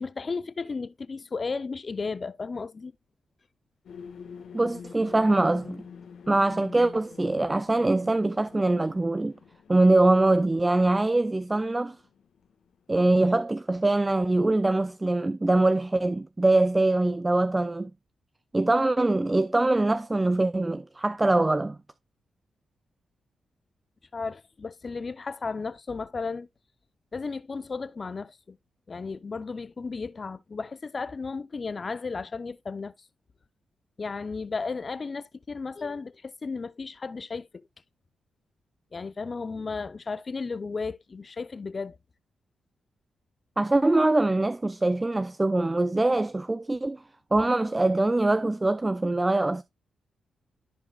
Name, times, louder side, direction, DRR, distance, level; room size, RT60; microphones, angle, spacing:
voice 1, 0.0-2.9 24.1-26.5 27.1-28.6 28.9-32.9 34.0-37.7 38.9-42.0, left 4 dB, 45° left, 0.6 m, -34 dB
sound 1, 3.8-13.1, left 6 dB, 70° left, 1.4 m, -47 dB
voice 2, 4.5-5.8 6.3-9.3 9.7-12.0 12.9-17.9 18.5-21.8 43.6-47.0 47.3-49.6, right 2 dB, 20° right, 0.5 m, -23 dB
13.5 x 4.9 x 2.3 m
supercardioid pair, 55°, 0 cm